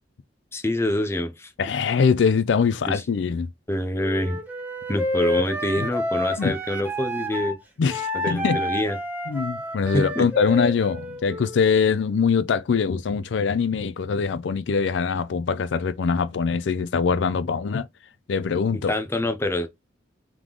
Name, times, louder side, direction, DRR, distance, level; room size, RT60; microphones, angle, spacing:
voice 1, 0.5-1.5 1.9-2.0 2.9-3.0 3.7-4.4 4.9-7.6 8.2-9.0 9.9-10.5 18.9-19.7, left 1 dB, 15° left, 0.5 m, -26 dB
voice 2, 1.6-3.5 5.8-5.9 6.4-6.5 7.8-8.6 9.3-17.9 18.3-18.9, left 5 dB, 75° left, 0.4 m, -23 dB
Wind instrument woodwind instrument, 4.0-7.6 7.9-11.6, left 1 dB, 10° right, 0.9 m, -29 dB
3.6 x 3.1 x 3.7 m
head